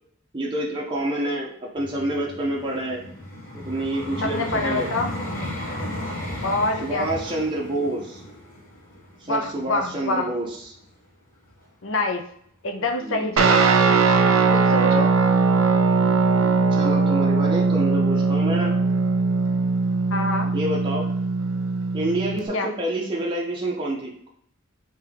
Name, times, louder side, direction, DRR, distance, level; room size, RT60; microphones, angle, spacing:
voice 1, 0.3-3.0 3.5-4.9 6.8-8.2 9.2-10.7 13.0-13.3 16.7-18.7 20.5-21.0 21.9-24.3, right 1 dB, 20° right, -4 dB, 0.5 m, -28 dB
Vehicle, 1.8-10.8 11.5-11.6, left 1 dB, 40° left, 1.3 m, -35 dB
voice 2, 4.2-5.1 6.4-7.1 9.3-10.3 11.8-12.2 12.6-13.7 14.5-15.1 20.1-20.5 22.5-22.7, left 2 dB, 60° left, 4 dB, 0.5 m, -25 dB
Guitar, 13.4-22.5, right 4 dB, 70° right, 0.5 m, -20 dB
3.4 x 2.8 x 3.3 m, 0.67 s
head